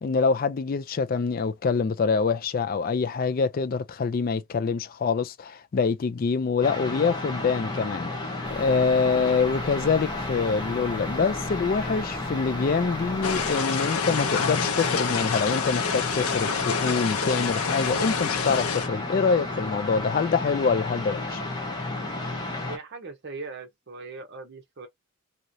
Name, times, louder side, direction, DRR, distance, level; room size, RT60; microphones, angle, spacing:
voice 1, 0.0-21.4, left 5 dB, 40° left, 0.3 m, -25 dB
sound 1, 6.6-22.8, left 2 dB, 20° left, 0.8 m, -32 dB
sound 2, 8.4-13.6, right 1 dB, 5° right, 0.8 m, -42 dB
sound 3, 13.2-18.9, left 6 dB, 85° left, 0.7 m, -27 dB
voice 2, 22.7-24.9, right 3 dB, 50° right, 0.7 m, -39 dB
3.0 x 2.8 x 2.6 m
head